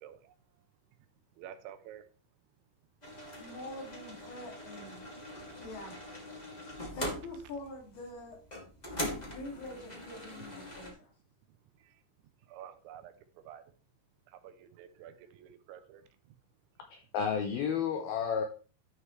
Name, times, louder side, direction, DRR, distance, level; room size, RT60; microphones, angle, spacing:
voice 1, 1.4-2.0 12.5-13.1 13.5-13.6 14.4-16.0, right 10 dB, 80° right, 9 dB, 2.9 m, -49 dB
sound 1, 3.0-10.9, equal, 40° left, 0.5 m, -42 dB
voice 2, 3.4-5.0 5.6-6.0 6.9-8.4 9.3-11.1, left 2 dB, 60° left, 0 dB, 4.2 m, -44 dB
voice 3, 16.9-18.4, left 7 dB, 85° left, 4 dB, 2.1 m, -31 dB
12.5 x 6.6 x 3.2 m, 0.38 s
omnidirectional pair, 5.6 m